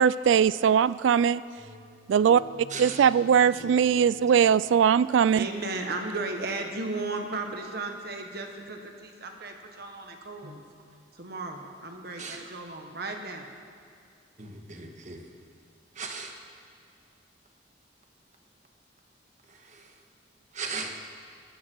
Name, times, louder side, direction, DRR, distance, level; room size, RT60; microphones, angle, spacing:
voice 1, 0.0-1.4 2.1-2.4 2.8-5.4, right 8 dB, 75° right, 18 dB, 0.3 m, -20 dB
sound 1, 1.6-6.5, left 2 dB, 55° left, 3.2 m, -49 dB
voice 2, 2.7-3.0 10.4-10.6 12.2-12.4 14.4-15.2 15.9-16.4 19.5-19.9 20.5-21.0, right 4 dB, 40° right, 4 dB, 1.5 m, -38 dB
voice 3, 5.3-10.6 11.1-13.5, right 3 dB, 55° right, 4 dB, 1.4 m, -35 dB
21.5 x 12.5 x 4.6 m, 2.3 s
head